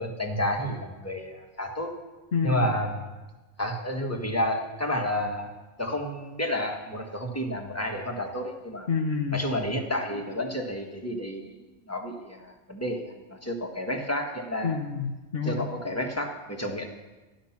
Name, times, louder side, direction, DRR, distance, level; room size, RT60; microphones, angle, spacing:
voice 1, 0.0-1.9 2.4-3.1 3.6-5.5 5.8-8.9 9.3-11.5 11.9-13.1 13.4-14.8 15.4-16.9, left 1 dB, 10° left, 1 dB, 1.6 m, -30 dB
voice 2, 2.3-2.7 8.9-9.4 14.6-15.6, left 5 dB, 55° left, 1 dB, 1.2 m, -28 dB
13.5 x 12.0 x 5.9 m, 1.2 s
omnidirectional pair, 1.3 m